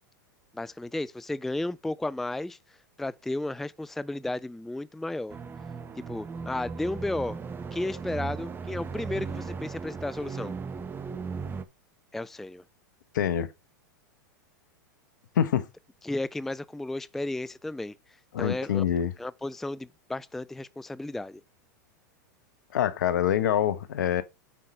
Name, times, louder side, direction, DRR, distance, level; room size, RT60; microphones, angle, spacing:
voice 1, 0.5-5.4 6.1-7.4 7.7-10.5 12.1-12.6 16.0-18.8 19.2-21.4, left 2 dB, 5° left, 0.3 m, -33 dB
sound 1, 5.3-11.6, right 5 dB, 20° right, 1.0 m, -37 dB
voice 2, 13.1-13.5 15.3-15.7 18.3-19.1 22.7-24.2, left 10 dB, 70° left, 1.1 m, -25 dB
8.9 x 5.7 x 3.3 m
hypercardioid pair, 100°, 10 cm